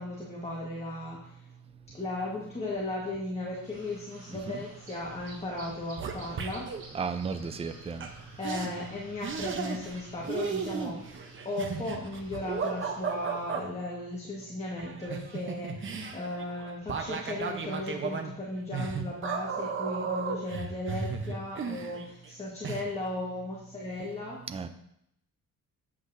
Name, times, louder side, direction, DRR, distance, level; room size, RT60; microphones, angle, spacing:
voice 1, 0.0-1.5 1.9-6.7 8.4-11.2 11.4-24.4, left 2 dB, 20° left, -4 dB, 1.3 m, -36 dB
sound 1, 3.6-13.5, right 2 dB, 60° right, 3.1 m, -51 dB
sound 2, 5.0-5.3 5.6-6.8 8.0-8.1 8.4-8.7 9.2-10.0 10.3-13.6 14.8-22.3 22.6-22.8, right 5 dB, 40° right, 0.8 m, -35 dB
voice 2, 6.9-8.1 24.5-24.7, right 5 dB, 20° right, 9 dB, 0.4 m, -34 dB
8.2 x 7.5 x 2.6 m, 0.77 s
cardioid pair, 150°, 33 cm